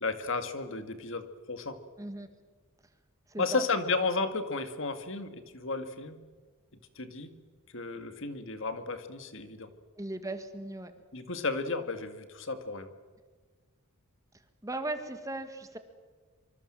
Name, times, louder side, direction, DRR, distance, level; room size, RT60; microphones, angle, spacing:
voice 1, 0.0-1.8 3.4-6.2 7.0-7.3 7.7-9.7 11.1-12.9, left 3 dB, 60° left, 9 dB, 1.9 m, -33 dB
voice 2, 3.3-3.6 10.0-10.9 14.6-15.8, right 2 dB, 15° right, 8 dB, 1.8 m, -37 dB
25.5 x 25.5 x 7.6 m, 1.4 s
head